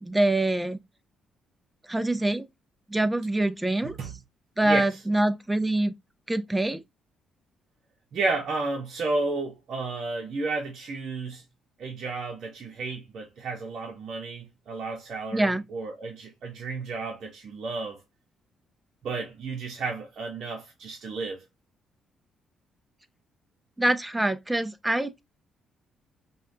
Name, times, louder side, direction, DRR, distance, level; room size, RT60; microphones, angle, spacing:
voice 1, 0.0-0.8 1.9-2.4 2.9-4.0 4.6-5.9 6.3-6.8 15.3-15.6 23.8-25.2, right 1 dB, 10° right, 0.6 m, -25 dB
voice 2, 3.8-4.1 4.6-4.9 8.1-11.4 11.8-18.0 19.0-21.4, right 3 dB, 60° right, 1.0 m, -32 dB
5.6 x 2.4 x 2.7 m
cardioid pair, 90°, 0 cm